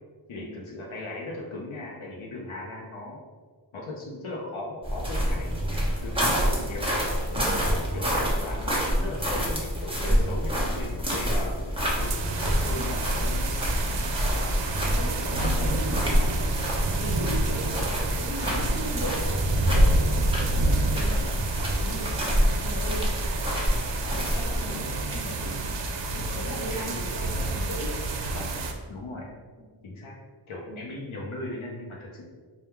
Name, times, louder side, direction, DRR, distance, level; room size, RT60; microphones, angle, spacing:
voice 1, 0.3-3.2 3.7-6.9 7.6-11.5 12.0-12.1 12.4-13.5 14.2-14.6 20.9-21.3 24.1-25.4 26.7-27.4 28.2-28.6 28.9-29.3 29.8-30.1 30.5-32.2, left 2 dB, 80° left, -3 dB, 0.7 m, -38 dB
sound 1, 4.8-24.6, equal, 10° right, 1.0 m, -27 dB
sound 2, 5.5-23.8, equal, 30° right, 1.1 m, -40 dB
voice 2, 7.3-7.6 10.1-10.3 12.6-13.0 13.8-14.1 14.8-16.5 16.9-23.1 24.0-25.8 26.1-27.9 30.7-30.8, equal, 40° left, -3 dB, 1.2 m, -38 dB
sound 3, 12.0-28.7, right 2 dB, 65° right, 0.6 m, -30 dB
3.6 x 2.3 x 4.3 m, 1.5 s
wide cardioid pair, 65°, 47 cm